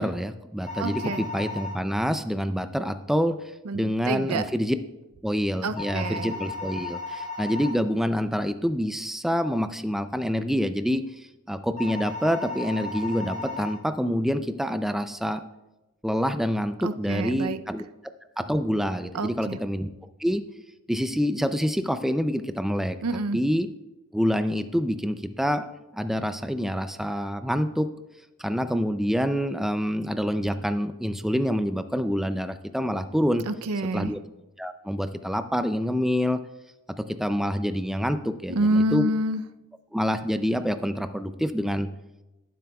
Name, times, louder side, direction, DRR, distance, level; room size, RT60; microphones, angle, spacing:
voice 1, 0.0-3.4 3.7-4.8 5.2-15.4 16.0-17.8 18.4-19.9 20.2-20.4 20.9-23.0 23.3-23.7 24.1-25.7 25.9-27.9 28.4-33.5 33.9-34.2 34.6-36.4 37.0-39.1 39.9-41.9, equal, ahead, 9 dB, 0.4 m, -26 dB
Hotel Phone, 0.6-1.8 5.8-7.8 11.8-13.8, left 3 dB, 35° left, 3.9 m, -35 dB
voice 2, 0.8-1.2 3.7-4.4 5.6-6.3 16.8-17.6 19.1-19.6 23.0-23.4 33.5-34.1 38.5-39.4, right 1 dB, 80° right, 12 dB, 0.6 m, -27 dB
21.0 x 7.5 x 2.3 m, 1.0 s
head